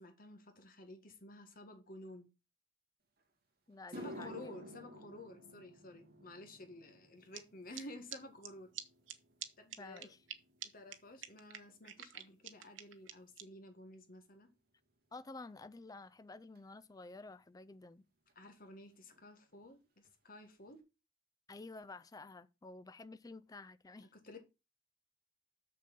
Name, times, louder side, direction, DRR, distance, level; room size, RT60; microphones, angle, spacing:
voice 1, 0.0-2.3 3.9-8.7 9.6-10.1 10.6-14.5 18.4-20.8 24.1-24.4, left 1 dB, 50° left, 1.7 m, -52 dB
sound 1, 3.2-3.3 3.7-12.2 12.5-13.0 13.7-13.8 16.6-16.7 18.3-18.4 18.6-18.8 19.1-19.6 20.0-20.1 20.7-20.8, equal, 50° right, 2.4 m, -54 dB
voice 2, 3.7-4.5 9.8-10.2 15.1-18.0 21.5-24.1, left 3 dB, 20° left, 0.4 m, -51 dB
sound 2, 7.3-7.4 7.7-7.8 8.1-8.2 8.4-8.5 8.7-8.8 9.1-9.2 9.4-9.5 9.7-10.3 10.6-10.7 10.9-11.0 11.2-13.4, right 11 dB, 80° right, 1.0 m, -45 dB
6.8 x 6.6 x 5.3 m
head